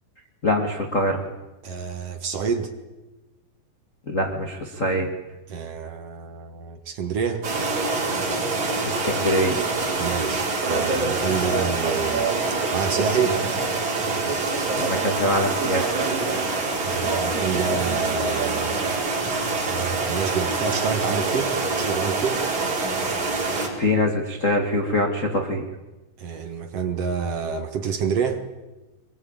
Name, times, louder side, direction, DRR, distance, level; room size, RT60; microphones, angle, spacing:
voice 1, 0.4-1.2 4.1-5.1 8.8-9.6 14.7-16.0 23.8-25.6, left 1 dB, 75° left, 1 dB, 0.7 m, -24 dB
voice 2, 1.6-2.7 5.5-7.5 10.0-12.2 12.7-13.4 16.8-18.9 19.7-22.4 26.2-28.4, right 6 dB, 60° right, 6 dB, 1.6 m, -28 dB
sound 1, 7.4-23.7, right 3 dB, 45° right, 5.3 m, -25 dB
22.5 x 22.0 x 8.8 m, 1.1 s
omnidirectional pair, 4.9 m